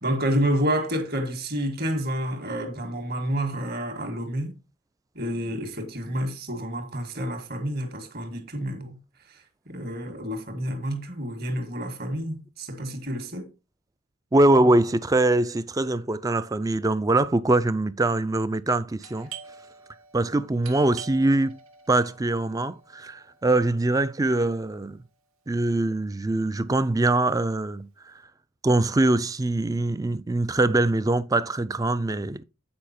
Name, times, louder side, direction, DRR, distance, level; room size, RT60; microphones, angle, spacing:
voice 1, 0.0-4.6 5.1-9.0 9.3-13.5, equal, 45° right, 1.7 m, -29 dB
voice 2, 14.3-19.3 20.1-21.6 21.9-25.0 25.5-28.1 28.6-32.4, right 2 dB, 15° right, 0.3 m, -23 dB
Doorbell, 19.0-24.4, right 6 dB, 75° right, 1.3 m, -46 dB
8.6 x 4.9 x 4.2 m
head